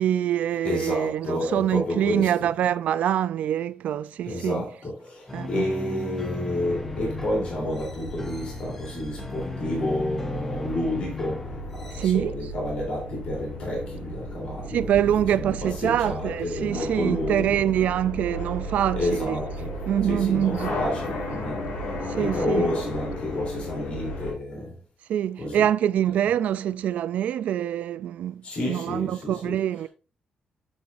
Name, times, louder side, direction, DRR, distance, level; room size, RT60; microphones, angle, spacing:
voice 1, 0.0-4.6 5.3-5.7 11.9-12.3 14.7-19.4 19.9-20.8 22.1-22.7 25.1-29.9, right 10 dB, 65° right, 0.3 m, -25 dB
voice 2, 0.6-2.5 4.2-17.7 18.9-19.8 20.1-21.7 22.2-24.8 25.4-25.6 28.4-29.6, left 1 dB, 45° left, 3.2 m, -30 dB
sound 1, 5.3-12.1, left 2 dB, 15° left, 0.6 m, -36 dB
sound 2, 6.6-24.3, left 1 dB, 75° left, 3.5 m, -35 dB
7.9 x 6.9 x 2.5 m
wide cardioid pair, 180°, 3 cm